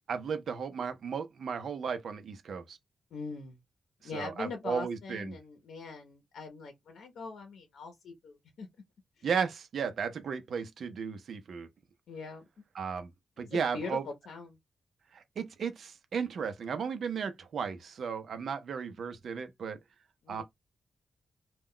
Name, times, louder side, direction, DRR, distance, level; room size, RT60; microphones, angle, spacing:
voice 1, 0.1-2.8 4.1-5.4 9.2-11.7 12.7-13.1 13.4-14.0 15.1-19.8 20.3-20.4, right 6 dB, 65° right, 0.6 m, -35 dB
voice 2, 3.1-3.6 4.0-8.7 9.2-9.3 12.1-12.4 13.4-14.6 20.2-20.4, left 4 dB, 90° left, 0.7 m, -42 dB
2.3 x 2.1 x 3.7 m
wide cardioid pair, 145°, 0 cm